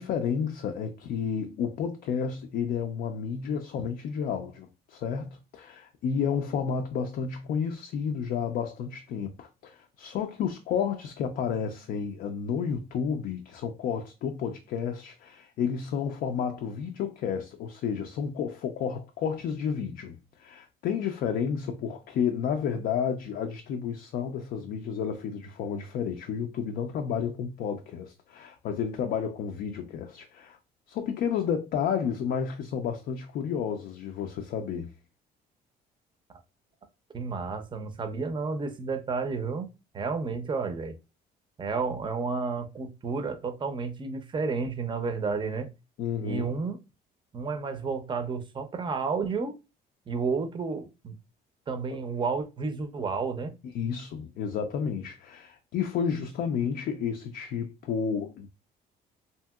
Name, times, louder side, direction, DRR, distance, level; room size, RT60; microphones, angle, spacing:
voice 1, 0.0-30.6 30.9-34.9 46.0-46.4 53.7-58.5, left 7 dB, 65° left, 0.4 m, -31 dB
voice 2, 37.1-39.7 39.9-40.9 41.6-45.7 46.2-46.8 47.3-49.5 50.1-51.1 51.7-53.5, right 4 dB, 30° right, 0.5 m, -31 dB
2.8 x 2.7 x 2.2 m
cardioid pair, 110°, 17 cm